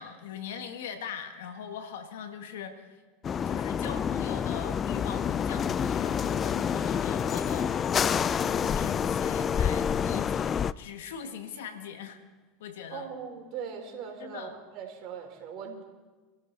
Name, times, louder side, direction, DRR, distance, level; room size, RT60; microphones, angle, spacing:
voice 1, 0.0-3.0 3.4-12.2 12.6-13.1 14.2-14.6 15.6-15.8, left 7 dB, 85° left, 7 dB, 1.7 m, -41 dB
sound 1, 3.2-10.7, left 7 dB, 35° left, 0.4 m, -28 dB
voice 2, 12.9-15.8, right 7 dB, 55° right, 1 dB, 4.1 m, -40 dB
26.0 x 13.5 x 4.1 m, 1.3 s
hypercardioid pair, 100°, 0 cm